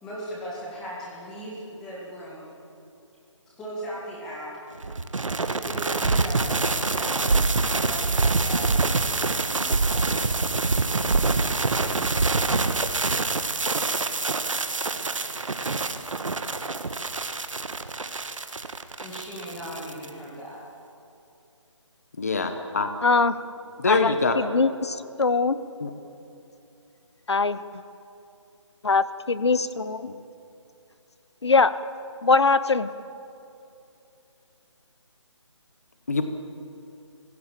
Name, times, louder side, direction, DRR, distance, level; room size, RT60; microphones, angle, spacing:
voice 1, 0.0-2.5 3.6-4.5 5.6-7.6 7.8-10.0 10.7-11.8 19.0-20.6, right 1 dB, 5° left, -6 dB, 1.8 m, -38 dB
sound 1, 4.8-20.1, right 3 dB, 85° right, 1.6 m, -25 dB
voice 2, 22.2-22.9 23.8-24.4 25.8-25.9 36.1-36.2, left 4 dB, 30° left, 7 dB, 1.0 m, -24 dB
voice 3, 23.0-23.3 23.9-25.6 27.3-27.8 28.8-30.1 31.4-31.7 32.2-32.9, left 4 dB, 60° left, 14 dB, 1.0 m, -22 dB
29.0 x 16.0 x 7.5 m, 2.7 s
hypercardioid pair, 180°, 16 cm